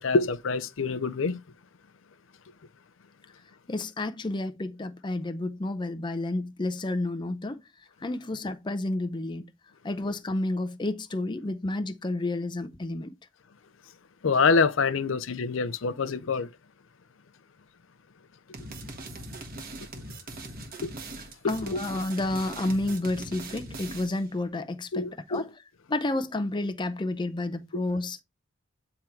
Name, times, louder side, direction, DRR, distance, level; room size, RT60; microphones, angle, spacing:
voice 1, 0.0-1.4 14.2-16.5 20.8-20.9 21.4-21.8 24.9-25.4 27.7-27.8, left 4 dB, 75° left, 0.6 m, -26 dB
voice 2, 3.7-7.6 8.0-9.4 9.8-13.1 21.5-25.5 25.9-28.2, left 2 dB, 25° left, 0.5 m, -30 dB
sound 1, 18.5-24.3, right 2 dB, 45° right, 1.4 m, -41 dB
9.0 x 3.6 x 4.5 m
head